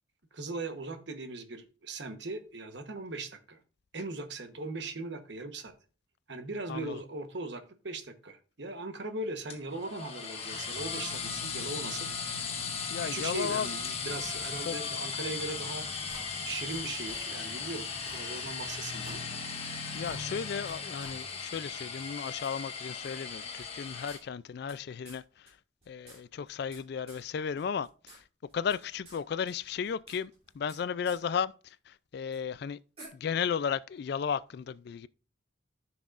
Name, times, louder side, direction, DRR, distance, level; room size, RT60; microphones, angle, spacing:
voice 1, 0.3-3.6 3.9-5.7 6.3-12.1 13.0-15.9 16.4-19.2, right 2 dB, 60° right, 1.1 m, -39 dB
voice 2, 6.7-7.0 12.9-13.7 14.6-14.8 19.9-25.2 25.9-28.2 28.5-31.5 31.9-32.8 33.1-35.1, left 7 dB, 55° left, 0.3 m, -34 dB
sound 1, 9.5-24.2, left 5 dB, 30° left, 1.4 m, -37 dB
sound 2, 16.1-16.8 17.1-17.2 17.6-17.7 17.9-18.8 19.0-19.2 19.6-19.7 19.9-20.7 21.0-21.1 21.5-21.6 22.4-22.5 23.6-24.8 25.0-25.2 25.5-25.6 25.8-26.8 27.1-27.2 27.6-28.2 28.4-29.2 29.5-30.8 31.0-31.2 32.3-32.4 33.0-33.1, right 2 dB, 30° right, 3.0 m, -51 dB
14.0 x 6.0 x 2.5 m
head